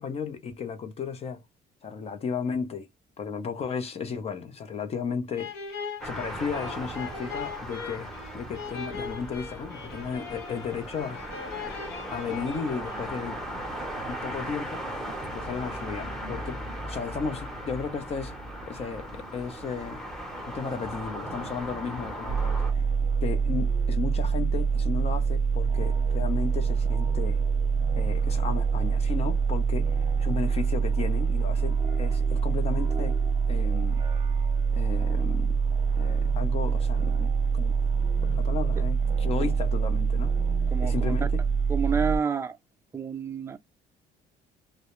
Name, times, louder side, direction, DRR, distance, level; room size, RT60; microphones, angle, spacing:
voice 1, 0.0-1.4 1.8-2.9 3.2-5.5 6.0-11.5 12.1-13.4 14.1-14.9 15.3-16.6 16.9-18.3 18.7-20.0 20.5-22.9 23.2-27.4 28.0-33.2 33.5-34.0 34.7-35.6 36.0-37.7 38.2-40.4 40.8-41.4, left 5 dB, 35° left, 0.6 m, -34 dB
sound 1, 5.3-13.4, left 5 dB, 80° left, 0.9 m, -40 dB
sound 2, 6.0-22.7, equal, 5° left, 0.8 m, -37 dB
sound 3, 22.3-42.2, right 5 dB, 35° right, 0.7 m, -25 dB
voice 2, 40.7-41.2 41.7-42.6 42.9-43.6, right 6 dB, 15° right, 0.4 m, -29 dB
2.2 x 2.0 x 2.9 m
cardioid pair, 110°, 17 cm